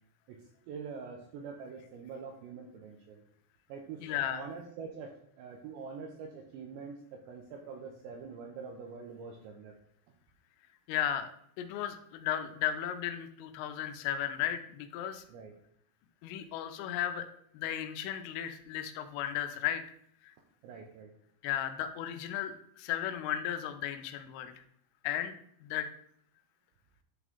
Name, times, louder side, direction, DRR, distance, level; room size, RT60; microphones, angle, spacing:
voice 1, 0.7-3.2 3.7-4.0 4.3-5.1 5.4-7.0 7.3-9.7 15.3-15.5 20.6-21.1, right 5 dB, 80° right, 2 dB, 2.6 m, -44 dB
voice 2, 4.0-4.4 10.9-11.3 11.6-15.2 16.2-17.3 17.5-19.8 20.2-20.3 21.4-24.6 25.0-25.3 25.6-25.9, left 11 dB, 85° left, 8 dB, 3.2 m, -35 dB
11.0 x 3.7 x 3.5 m, 0.68 s
omnidirectional pair, 5.8 m